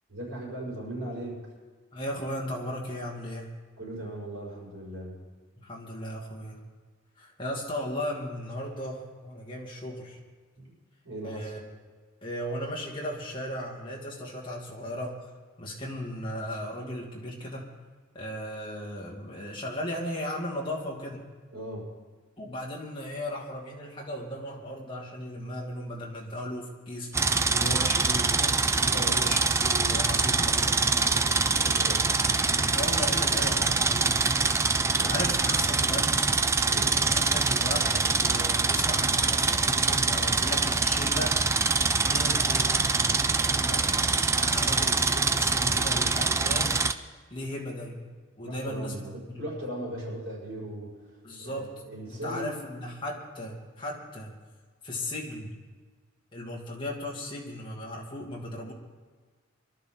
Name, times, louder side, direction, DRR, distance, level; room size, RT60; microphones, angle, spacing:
voice 1, 0.1-1.5 3.8-5.2 11.0-11.5 21.5-21.9 28.8-29.4 31.6-32.2 35.0-35.7 36.6-37.3 43.6-43.9 48.4-52.6, right 1 dB, 75° right, -5 dB, 6.0 m, -38 dB
voice 2, 1.9-3.5 5.6-6.6 7.2-10.2 11.2-11.6 12.2-15.3 15.6-17.7 18.1-21.3 22.4-31.3 32.7-34.2 34.6-36.2 37.0-41.4 42.0-42.8 44.3-46.8 47.3-48.1 48.4-49.0 49.3-49.5 51.2-51.7 52.1-54.3 54.8-55.5 56.3-58.7, left 1 dB, 25° left, -2 dB, 2.4 m, -36 dB
sound 1, 27.1-46.9, right 4 dB, 15° right, 0.3 m, -24 dB
23.0 x 12.5 x 4.0 m, 1.4 s
head